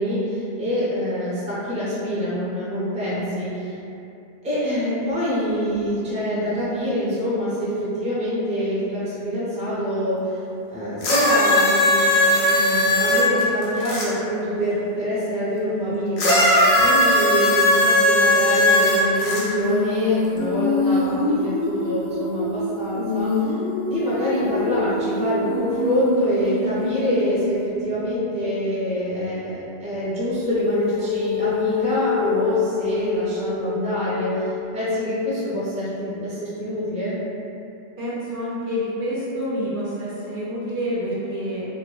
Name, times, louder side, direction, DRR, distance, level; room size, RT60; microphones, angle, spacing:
voice 1, 0.0-3.8 4.4-10.2 10.7-23.5 23.9-37.2, equal, 10° right, -10 dB, 0.5 m, -25 dB
sound 1, 11.0-14.1 16.2-19.4 20.4-20.5, left 1 dB, 85° left, 0.8 m, -18 dB
Female singing, 19.3-28.2 30.4-34.6, left 3 dB, 50° left, 0.6 m, -26 dB
voice 2, 38.0-41.7, equal, 60° right, -9 dB, 0.7 m, -28 dB
2.2 x 2.1 x 3.0 m, 2.8 s
omnidirectional pair, 1.0 m